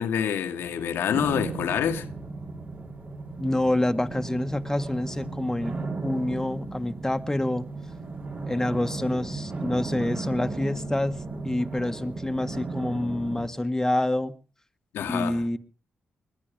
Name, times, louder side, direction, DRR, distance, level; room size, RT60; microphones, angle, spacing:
voice 1, 0.0-2.1 14.9-15.4, left 8 dB, 80° left, 1.6 m, -27 dB
sound 1, 1.1-13.5, right 3 dB, 45° right, 5.4 m, -35 dB
voice 2, 3.4-5.8 6.0-7.7 8.5-14.3 15.0-15.6, left 1 dB, 10° left, 1.6 m, -27 dB
21.0 x 11.5 x 5.2 m
supercardioid pair, 45°, 4 cm